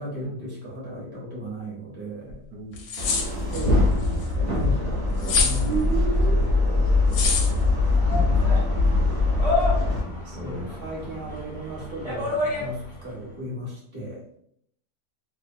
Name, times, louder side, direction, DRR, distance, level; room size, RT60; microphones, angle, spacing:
voice 1, 0.0-2.4 3.5-4.1 4.3-5.9 6.2-7.7 8.1-9.2 10.4-14.2, equal, 20° right, -5 dB, 0.7 m, -36 dB
sound 1, 2.3-2.4 2.7-3.7 5.2-5.6 7.1-7.5, left 5 dB, 70° left, 0.9 m, -24 dB
voice 2, 2.5-2.9 8.5-8.6 9.7-10.8, right 2 dB, 75° right, 0 dB, 1.0 m, -39 dB
sound 2, 3.0-10.0, left 2 dB, 40° right, 1.0 m, -22 dB
sound 3, 6.8-13.1, left 2 dB, 25° left, 0.7 m, -31 dB
2.5 x 2.3 x 2.7 m, 0.69 s
omnidirectional pair, 1.8 m